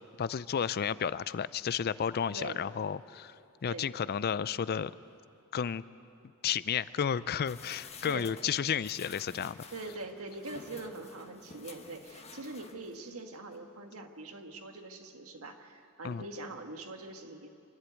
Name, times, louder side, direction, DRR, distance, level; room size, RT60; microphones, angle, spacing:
voice 1, 0.2-4.9 5.5-5.8 6.4-9.6 16.0-16.2, left 7 dB, 45° left, 17 dB, 0.4 m, -32 dB
sound 1, 7.4-13.1 13.5-13.6, left 4 dB, 30° left, 1.2 m, -51 dB
voice 2, 9.7-17.5, right 2 dB, 75° right, 4 dB, 1.7 m, -43 dB
26.5 x 11.5 x 9.3 m, 2.6 s
head